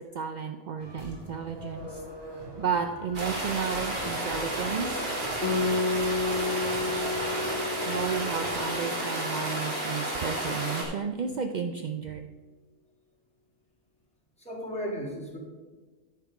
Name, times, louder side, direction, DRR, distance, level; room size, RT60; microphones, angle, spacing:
voice 1, 0.1-2.0 2.6-4.9 7.9-12.3, right 6 dB, 70° right, 6 dB, 0.4 m, -32 dB
sound 1, 0.8-9.1, right 1 dB, 20° right, 1.7 m, -44 dB
sound 2, 3.1-10.8, right 1 dB, 40° right, 1.8 m, -32 dB
Guitar, 5.4-10.4, left 3 dB, 65° left, 1.4 m, -32 dB
voice 2, 14.4-15.4, equal, 5° left, -4 dB, 2.1 m, -36 dB
10.0 x 5.8 x 4.8 m, 1.3 s
omnidirectional pair, 1.3 m